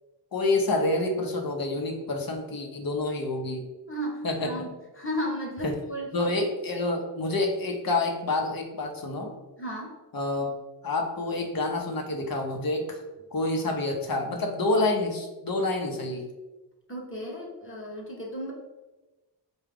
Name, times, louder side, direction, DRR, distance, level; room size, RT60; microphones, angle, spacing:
voice 1, 0.3-3.6 4.2-4.7 5.6-5.7 6.1-9.3 10.1-10.5 10.8-13.0 13.3-16.2, left 2 dB, 55° left, 3 dB, 0.7 m, -28 dB
voice 2, 3.9-4.7 5.0-6.1 9.6-9.9 16.9-18.5, equal, 30° left, -2 dB, 0.9 m, -34 dB
4.7 x 2.3 x 3.4 m, 1.1 s
wide cardioid pair, 100°, 43 cm